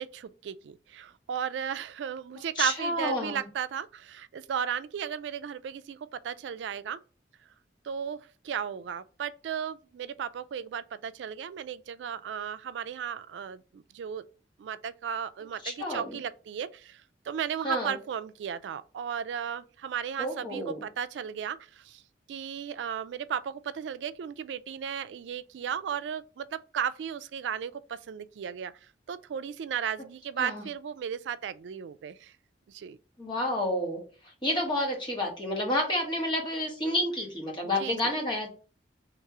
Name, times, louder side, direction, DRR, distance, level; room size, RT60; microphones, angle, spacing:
voice 1, 0.0-7.0 7.8-14.2 14.6-22.0 22.3-28.7 29.1-32.3 32.7-33.0 37.8-38.0, right 8 dB, 85° right, 0.3 m, -35 dB
voice 2, 2.5-3.5 15.6-16.2 17.6-18.0 20.2-20.8 30.4-30.6 33.2-38.5, left 1 dB, 25° left, 1.3 m, -30 dB
3.2 x 2.9 x 4.6 m
head